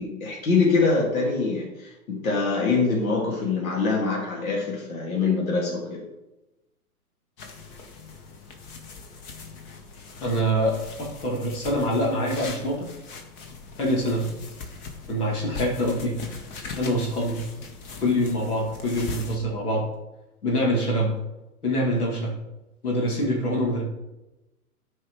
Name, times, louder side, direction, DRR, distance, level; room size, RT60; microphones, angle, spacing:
voice 1, 0.0-6.0, left 4 dB, 65° left, -2 dB, 2.1 m, -24 dB
sound 1, 7.4-19.4, left 4 dB, 25° left, 0.9 m, -40 dB
voice 2, 10.2-12.9 13.8-14.2 15.1-16.2 16.8-17.4 18.0-19.9 20.4-21.1 21.6-22.3 22.8-23.8, equal, 85° left, -3 dB, 2.3 m, -25 dB
10.5 x 4.7 x 3.1 m, 1.0 s
hypercardioid pair, 125°, 44 cm